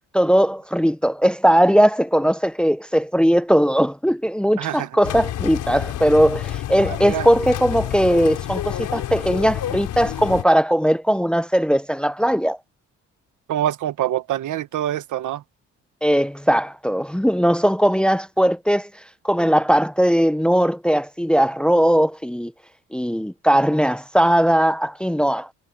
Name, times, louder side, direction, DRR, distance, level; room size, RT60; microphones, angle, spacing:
voice 1, 0.1-12.6 16.0-18.9 19.2-22.5 22.9-25.5, equal, 5° left, 0.8 m, -19 dB
voice 2, 4.6-4.9 6.8-7.3 13.5-15.4, right 12 dB, 80° right, 1.6 m, -25 dB
sound 1, 5.0-10.4, left 12 dB, 80° left, 4.6 m, -29 dB
cardioid pair, 90°, 30 cm